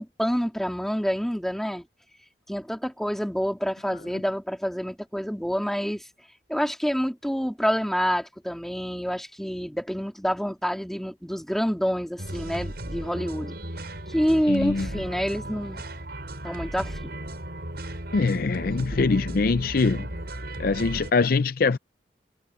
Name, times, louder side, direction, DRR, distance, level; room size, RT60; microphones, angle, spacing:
voice 1, 0.0-1.9 2.5-6.0 6.5-13.5 14.1-15.8 16.4-17.0, equal, ahead, 2.7 m, -27 dB
sound 1, 12.2-21.1, right 1 dB, 65° right, 7.6 m, -36 dB
voice 2, 14.5-15.0 18.1-20.1 20.6-21.8, left 4 dB, 55° left, 0.5 m, -23 dB
head